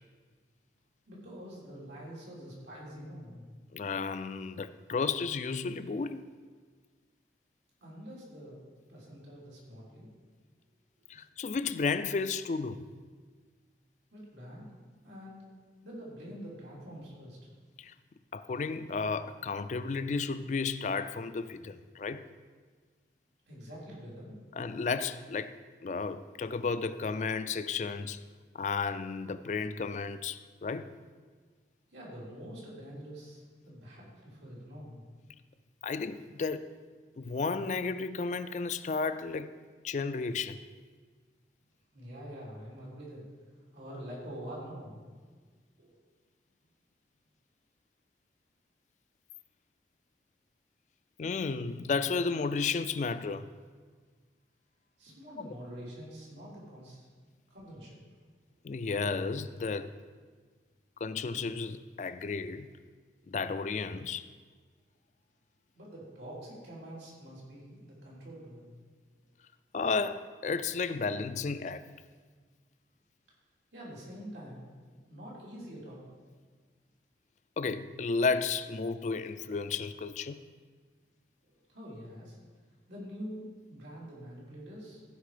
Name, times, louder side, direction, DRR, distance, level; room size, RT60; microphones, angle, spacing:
voice 1, 1.1-3.4 7.8-8.6 8.9-10.1 14.1-14.7 15.0-15.4 15.8-17.4 23.5-24.4 31.9-35.0 41.9-43.2 43.7-45.3 45.8-46.0 55.0-57.1 57.5-58.0 65.7-68.7 69.2-69.3 73.7-76.1 81.4-82.4 82.9-85.0, equal, 90° right, 3.5 m, -46 dB
voice 2, 3.7-6.2 11.1-12.9 17.8-17.9 18.3-22.3 24.6-25.5 25.8-28.2 28.5-31.0 35.8-36.7 37.2-39.5 39.8-40.6 43.9-44.0 51.2-53.5 58.6-59.9 61.0-62.7 63.3-64.3 69.7-71.8 77.6-80.4, left 4 dB, 40° left, 0.3 m, -33 dB
15.0 x 5.4 x 5.0 m
head